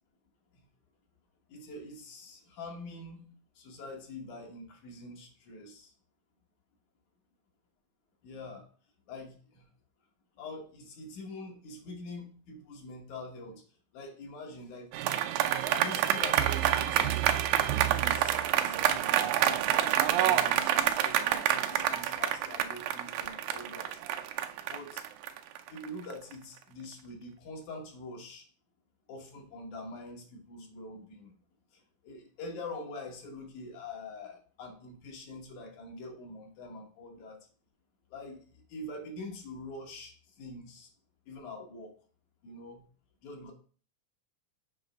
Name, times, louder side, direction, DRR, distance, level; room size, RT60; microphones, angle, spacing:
voice 1, 1.5-3.3 3.6-5.9 8.2-8.7 9.1-9.6 10.4-13.6 13.9-14.9 15.7-17.2 18.0-24.0 24.6-25.0 25.7-28.4 29.1-31.3 31.7-37.4 38.1-38.4 38.7-40.9 41.3-41.9 42.4-42.8 43.2-43.5, left 2 dB, 75° left, 2 dB, 2.6 m, -44 dB
sound 1, 14.9-26.3, right 11 dB, 85° right, 2.1 m, -27 dB
7.6 x 3.3 x 5.2 m, 0.41 s
omnidirectional pair, 3.4 m